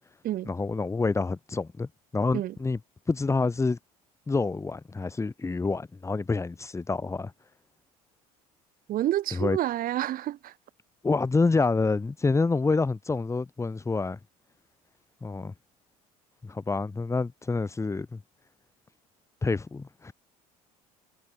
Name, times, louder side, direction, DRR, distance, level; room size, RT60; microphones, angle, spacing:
voice 1, 0.4-2.8 3.1-3.8 4.3-7.3 9.3-9.6 11.0-14.2 15.2-15.5 16.4-18.2 19.4-20.1, left 3 dB, 15° left, 1.2 m, -27 dB
voice 2, 8.9-10.5, right 13 dB, 50° right, 1.7 m, -29 dB
hypercardioid pair, 70°, 19 cm